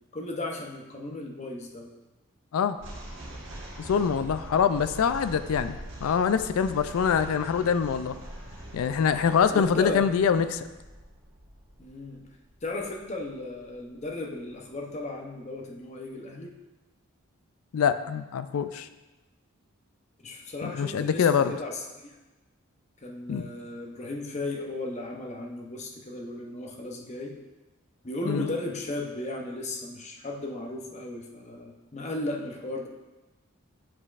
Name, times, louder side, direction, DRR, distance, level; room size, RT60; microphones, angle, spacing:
voice 1, 0.1-1.9 9.5-10.1 11.8-12.2 12.6-16.5 20.2-22.1 23.0-27.4 28.0-32.9, left 2 dB, 30° left, 1 dB, 0.7 m, -35 dB
sound 1, 2.8-14.1, right 1 dB, 55° right, 1.3 m, -44 dB
voice 2, 3.9-8.2 8.7-10.7 17.7-18.9 20.6-21.5 23.3-23.5 28.3-28.5, left 7 dB, 80° left, 11 dB, 0.3 m, -24 dB
8.6 x 5.2 x 2.4 m, 1.1 s
head